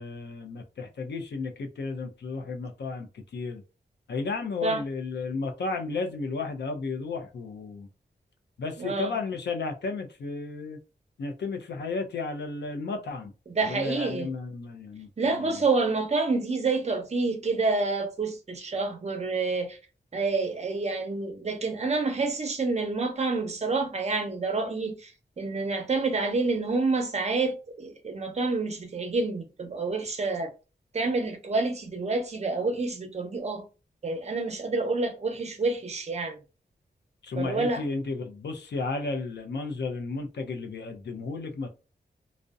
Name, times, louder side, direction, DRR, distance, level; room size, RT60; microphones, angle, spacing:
voice 1, 0.0-3.6 4.1-7.9 8.6-10.8 11.2-13.3 13.6-15.6 37.2-41.7, left 3 dB, 85° left, 0.5 m, -33 dB
voice 2, 8.8-9.2 13.5-14.3 15.2-19.8 20.1-25.1 25.4-30.5 30.9-33.6 34.0-36.4 37.4-37.8, right 3 dB, 40° right, 0.6 m, -28 dB
2.6 x 2.0 x 2.3 m
wide cardioid pair, 145°, 17 cm